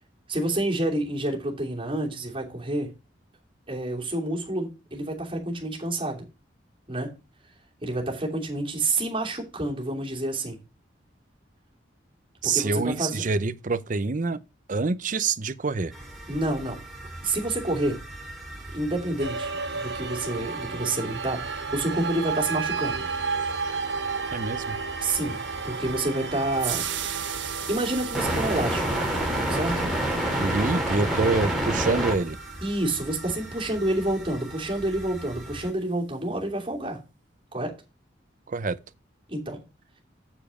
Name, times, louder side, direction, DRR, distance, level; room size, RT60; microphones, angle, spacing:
voice 1, 0.3-2.9 3.7-6.2 6.9-7.1 7.8-10.6 12.4-13.2 16.3-16.8 17.2-18.0 18.7-23.1 25.0-25.4 25.6-27.1 27.7-29.0 29.5-29.9 32.6-37.0 37.5-37.7 39.3-39.6, right 1 dB, 30° right, 2.8 m, -28 dB
voice 2, 12.4-14.4 14.7-15.9 24.3-24.8 30.4-32.4 38.5-38.8, right 3 dB, 45° right, 0.6 m, -26 dB
sound 1, 15.9-35.7, right 1 dB, ahead, 2.9 m, -33 dB
sound 2, 19.2-33.7, right 5 dB, 65° right, 1.1 m, -34 dB
sound 3, 25.1-33.4, right 11 dB, 85° right, 1.4 m, -39 dB
7.3 x 7.0 x 4.8 m
head